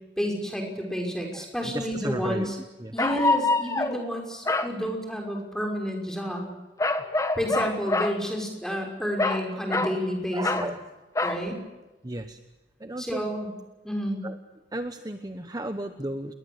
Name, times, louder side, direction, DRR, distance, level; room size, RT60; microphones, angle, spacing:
voice 1, 0.2-2.6 2.9-6.5 7.4-10.7 11.2-11.6 13.0-13.5 13.8-14.2, equal, 5° left, 2 dB, 6.0 m, -30 dB
sound 1, 1.4-1.5 3.0-4.0 4.5-4.7 6.8-8.2 9.2-10.0 10.4-10.7 11.2-11.4, left 2 dB, 20° left, 1.6 m, -25 dB
voice 2, 1.4-2.5 2.8-2.9 10.3-10.8 12.0-12.4 12.8-13.2 14.2-14.4 14.7-16.3, right 1 dB, 20° right, 8 dB, 1.1 m, -34 dB
28.5 x 21.5 x 8.2 m, 1.0 s
head